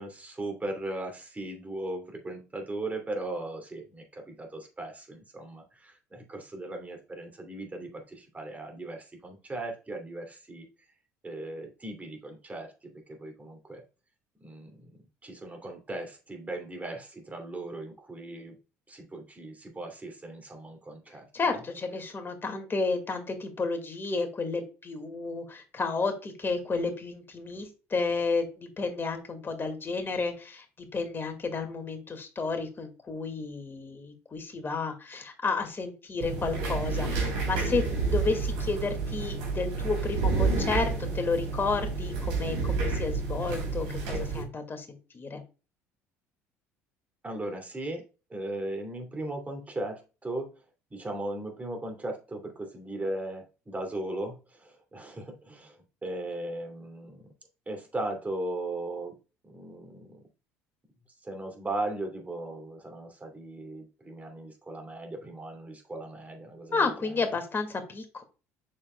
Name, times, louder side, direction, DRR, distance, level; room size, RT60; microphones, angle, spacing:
voice 1, 0.0-10.6 11.2-13.8 14.4-14.9 15.2-18.5 18.9-21.6 47.2-48.0 48.3-50.5 50.9-57.2 57.7-59.2 59.4-60.2 61.2-66.8, right 2 dB, 20° right, 3 dB, 2.6 m, -37 dB
voice 2, 21.3-37.9 38.1-45.4 66.7-68.2, left 4 dB, 30° left, 5 dB, 2.0 m, -31 dB
sound 1, 36.2-44.4, right 4 dB, 70° right, 3.2 m, -29 dB
7.2 x 6.6 x 2.3 m, 0.32 s
hypercardioid pair, 60°, 7 cm